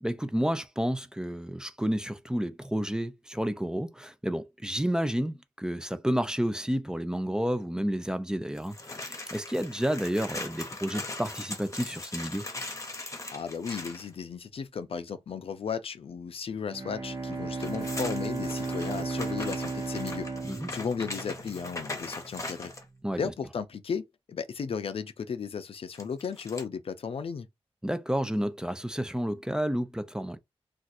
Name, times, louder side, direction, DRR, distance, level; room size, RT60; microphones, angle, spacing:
voice 1, 0.0-12.4 20.5-20.7 23.0-23.2 27.8-30.4, equal, 5° right, 0.5 m, -30 dB
sound 1, 8.6-14.1 17.3-22.9 25.9-26.6, left 2 dB, 30° left, 1.0 m, -40 dB
voice 2, 13.3-20.3 20.7-22.7 23.2-27.5, left 6 dB, 70° left, 0.5 m, -35 dB
Bowed string instrument, 16.7-21.9, right 3 dB, 40° right, 1.0 m, -34 dB
2.5 x 2.4 x 4.1 m
wide cardioid pair, 90°, 10 cm